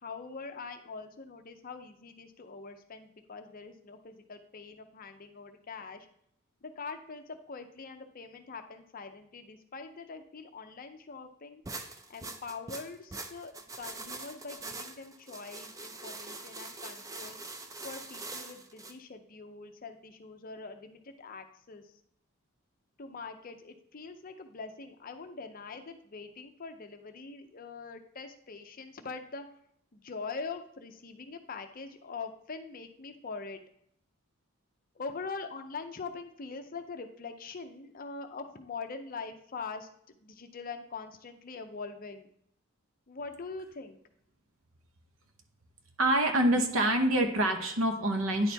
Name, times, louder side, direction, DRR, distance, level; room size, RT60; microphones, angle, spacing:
voice 1, 0.0-6.1 6.6-11.6 12.1-17.4 17.8-21.8 23.0-29.5 29.9-33.6 35.0-39.9 40.2-42.3 43.1-44.0, left 4 dB, 40° left, 7 dB, 0.6 m, -43 dB
sound 1, 11.7-18.9, right 3 dB, 15° right, 0.4 m, -43 dB
voice 2, 46.0-48.5, right 1 dB, 65° right, 5 dB, 0.9 m, -26 dB
9.8 x 4.3 x 3.4 m, 0.69 s
head